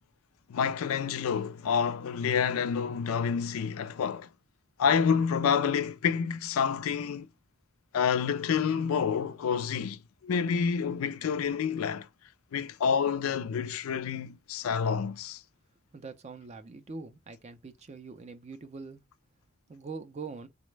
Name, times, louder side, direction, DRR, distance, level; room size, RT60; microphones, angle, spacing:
voice 1, 0.5-4.3 4.8-7.3 7.9-12.1 12.5-15.4, left 6 dB, 75° left, 0.3 m, -28 dB
voice 2, 15.9-19.0 19.7-20.5, right 4 dB, 30° right, 0.4 m, -43 dB
3.9 x 2.0 x 3.2 m
head